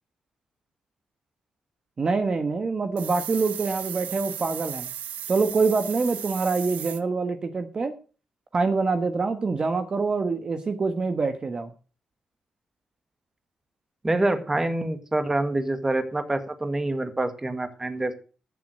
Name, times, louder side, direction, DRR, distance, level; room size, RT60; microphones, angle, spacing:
voice 1, 2.0-4.9 5.3-7.9 8.5-11.7, right 4 dB, 35° right, 7 dB, 1.3 m, -25 dB
sound 1, 3.0-7.0, right 10 dB, 90° right, 1.2 m, -36 dB
voice 2, 14.0-18.1, right 2 dB, 15° right, 9 dB, 1.7 m, -26 dB
14.5 x 7.5 x 6.5 m, 0.37 s
cardioid pair, 110°, 3 cm